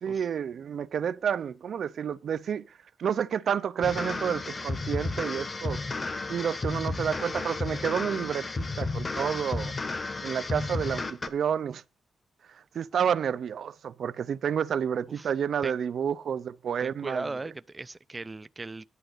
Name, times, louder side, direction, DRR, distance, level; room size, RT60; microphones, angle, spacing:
voice 1, 0.0-2.7 3.0-5.8 6.3-9.7 10.2-11.8 12.7-17.2, right 8 dB, 70° right, 0.6 m, -30 dB
sound 1, 3.8-11.3, left 3 dB, 30° left, 1.2 m, -33 dB
voice 2, 16.8-18.9, right 3 dB, 25° right, 0.4 m, -38 dB
11.0 x 5.1 x 6.6 m
cardioid pair, 105°, 0 cm